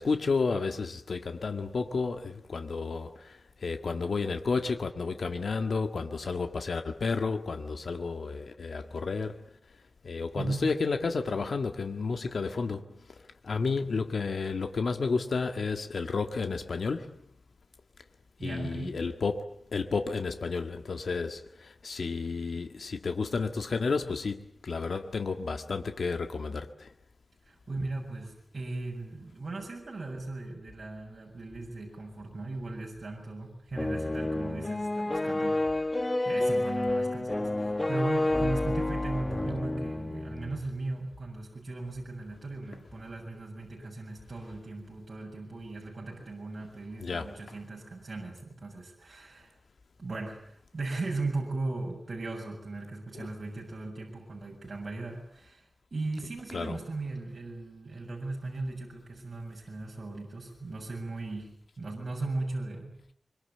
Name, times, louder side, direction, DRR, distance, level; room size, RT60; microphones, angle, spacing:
voice 1, 0.0-9.4 10.0-12.8 13.4-17.1 18.4-19.4 19.7-26.9 47.0-47.3 53.1-53.3 56.5-56.8, left 4 dB, 85° left, 6 dB, 1.8 m, -31 dB
voice 2, 10.3-10.7 18.4-19.0 27.5-49.6 50.0-63.0, right 2 dB, 50° right, -1 dB, 7.3 m, -37 dB
sound 1, 33.7-40.7, left 2 dB, 25° left, 1.2 m, -29 dB
25.5 x 25.0 x 8.5 m, 0.66 s
wide cardioid pair, 105°, 0 cm